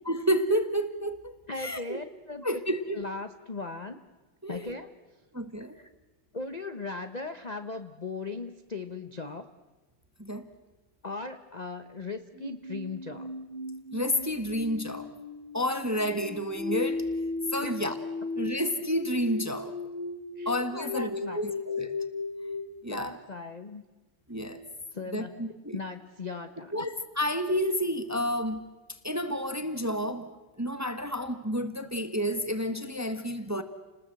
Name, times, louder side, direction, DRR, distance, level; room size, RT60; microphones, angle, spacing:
voice 1, 0.1-2.0 2.4-3.1 4.4-4.7 5.3-5.8 10.2-10.5 13.9-15.1 15.5-17.0 17.5-17.9 18.4-19.7 20.4-21.9 22.8-23.2 24.3-24.6 25.1-25.8 26.7-28.6 29.0-30.3 30.6-33.6, equal, 10° right, 9 dB, 1.0 m, -30 dB
voice 2, 1.5-2.4 2.9-4.0 4.5-4.9 5.7-5.9 6.3-9.5 11.0-13.3 17.6-17.7 20.4-21.6 22.9-23.8 24.9-25.4 25.7-26.9, left 3 dB, 35° left, 8 dB, 0.7 m, -38 dB
sound 1, 12.3-22.7, left 3 dB, 60° left, 5.1 m, -36 dB
30.0 x 20.0 x 7.7 m, 1.2 s
omnidirectional pair, 2.2 m